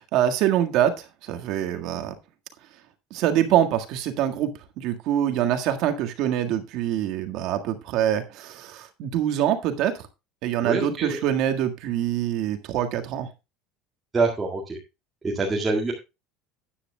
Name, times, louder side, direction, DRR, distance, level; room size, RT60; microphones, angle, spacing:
voice 1, 0.0-2.1 3.1-10.1 10.4-13.3, right 11 dB, 50° right, 6 dB, 1.7 m, -25 dB
voice 2, 10.6-11.2 14.1-14.8 15.2-15.9, right 3 dB, 15° right, -1 dB, 1.9 m, -25 dB
13.5 x 9.9 x 2.3 m, 0.25 s
cardioid pair, 165°, 0 cm